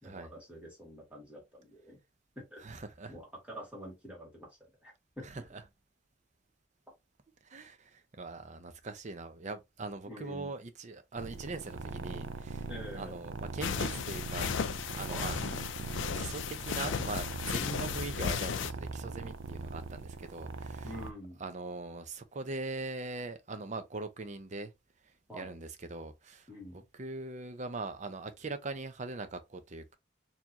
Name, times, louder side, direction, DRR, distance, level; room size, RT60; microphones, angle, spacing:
voice 1, 0.0-2.0 2.4-2.8 3.1-5.4 10.0-10.5 12.7-13.2 15.1-15.3 17.4-17.7 20.8-21.4 25.3-25.5 26.5-26.8, equal, 5° right, 2.2 m, -47 dB
voice 2, 2.6-3.1 5.2-5.6 7.4-12.7 12.9-14.5 14.9-15.4 16.1-20.9 21.4-24.7 25.0-30.0, right 3 dB, 40° right, 0.6 m, -41 dB
sound 1, 11.2-21.1, right 4 dB, 80° right, 0.5 m, -41 dB
sound 2, 13.6-18.7, left 7 dB, 80° left, 0.4 m, -35 dB
4.4 x 2.8 x 2.8 m
head